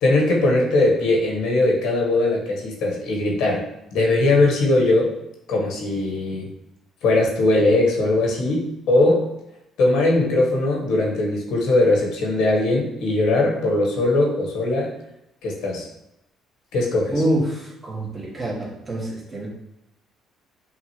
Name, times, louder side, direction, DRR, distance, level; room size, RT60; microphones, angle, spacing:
voice 1, 0.0-3.6 3.9-5.1 5.5-6.5 7.0-9.2 9.8-14.9 15.4-15.8 16.7-17.2, left 2 dB, 80° left, -1 dB, 1.2 m, -20 dB
voice 2, 17.1-19.5, right 1 dB, 30° right, -3 dB, 1.5 m, -26 dB
5.9 x 2.5 x 3.0 m, 0.85 s
cardioid pair, 85°, 0 cm